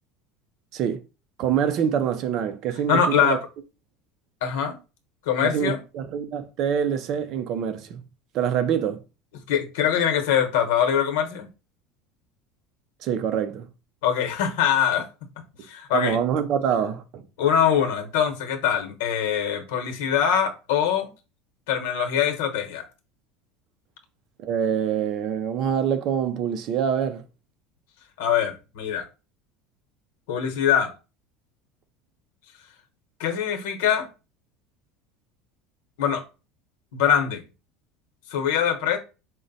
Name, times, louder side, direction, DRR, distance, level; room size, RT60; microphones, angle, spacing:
voice 1, 1.4-3.4 5.4-8.0 8.3-9.0 13.0-13.7 15.9-17.2 24.4-27.2, right 8 dB, 40° right, 0.4 m, -25 dB
voice 2, 2.9-3.4 4.4-4.8 5.3-5.8 9.5-11.5 14.0-15.1 15.7-16.2 17.4-21.1 21.7-22.8 28.2-29.0 30.3-30.9 33.2-34.1 36.0-36.2 36.9-37.4 38.3-39.0, left 8 dB, 90° left, 1.0 m, -23 dB
4.9 x 2.1 x 4.0 m
cardioid pair, 180°, 0 cm